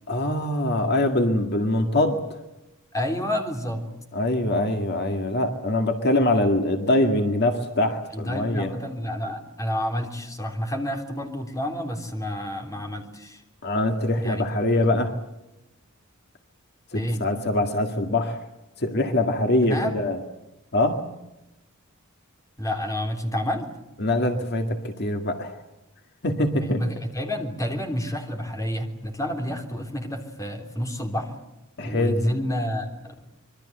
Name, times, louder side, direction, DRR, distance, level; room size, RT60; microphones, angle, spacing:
voice 1, 0.1-2.4 4.1-8.7 13.6-15.1 16.9-18.4 18.8-20.2 20.7-21.0 24.0-25.6 26.2-26.8 31.8-32.2, left 1 dB, 50° left, 5 dB, 2.0 m, -23 dB
voice 2, 2.9-3.8 8.1-13.4 14.2-14.4 14.7-15.0 16.9-17.3 19.6-20.0 22.6-23.7 26.5-31.3 31.8-33.1, left 1 dB, 15° left, 3 dB, 3.4 m, -29 dB
26.0 x 23.0 x 8.0 m, 0.95 s
head